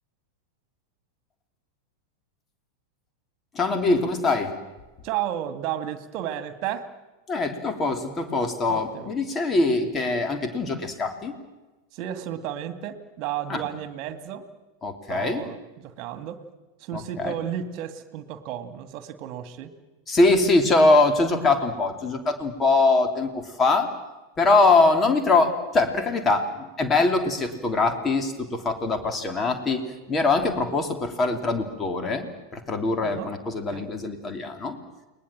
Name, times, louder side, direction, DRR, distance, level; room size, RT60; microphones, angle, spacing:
voice 1, 3.5-4.5 7.3-11.3 13.5-13.6 14.8-15.4 16.9-17.3 20.1-23.9 24.4-29.8 30.1-34.8, left 3 dB, 20° left, 6 dB, 3.4 m, -23 dB
voice 2, 5.0-6.8 8.7-9.1 11.9-14.4 15.1-16.4 16.8-19.7 33.0-33.9, right 10 dB, 40° right, 10 dB, 2.2 m, -33 dB
30.0 x 20.5 x 7.6 m, 1.1 s
figure-of-eight pair, 90°, 0 cm